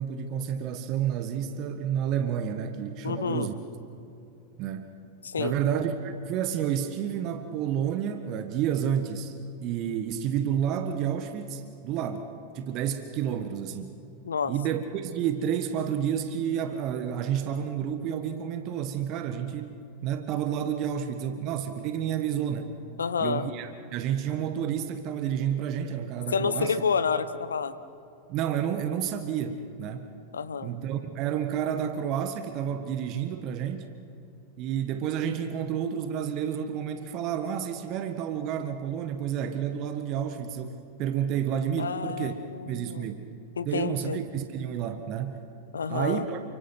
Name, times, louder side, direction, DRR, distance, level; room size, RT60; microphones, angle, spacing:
voice 1, 0.0-3.5 4.6-4.9 5.4-9.4 9.6-12.3 12.5-13.9 14.4-22.7 23.2-26.8 28.3-30.1 30.6-33.9 34.6-42.3 42.7-43.3 43.6-45.4 45.9-46.4, right 9 dB, 40° right, 8 dB, 1.5 m, -30 dB
voice 2, 3.0-3.5 5.2-5.5 14.2-14.5 23.0-23.5 26.3-27.8 30.3-30.7 41.8-43.1 43.6-44.2 45.7-46.3, left 6 dB, 70° left, 14 dB, 1.1 m, -29 dB
29.5 x 25.0 x 6.0 m, 2.7 s
figure-of-eight pair, 90°, 0 cm